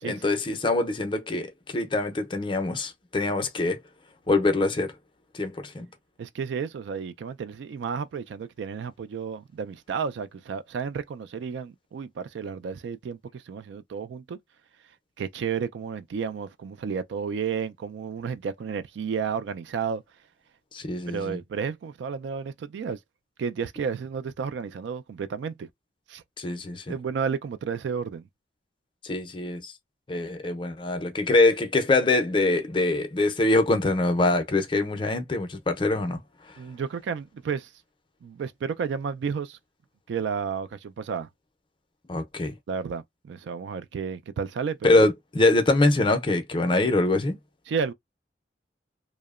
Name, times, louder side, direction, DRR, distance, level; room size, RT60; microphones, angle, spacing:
voice 1, 0.0-3.8 4.3-4.9 5.3-5.9 20.7-21.4 26.4-27.0 29.0-29.7 30.1-36.2 42.1-42.5 44.8-47.4, left 2 dB, 25° left, 0.5 m, -24 dB
voice 2, 6.2-14.4 15.2-20.0 21.1-23.0 23.4-25.7 26.1-26.2 26.9-28.3 36.6-37.7 38.2-39.6 40.1-41.3 42.7-45.0 47.7-47.9, right 6 dB, 70° right, 0.3 m, -32 dB
2.8 x 2.0 x 2.3 m
head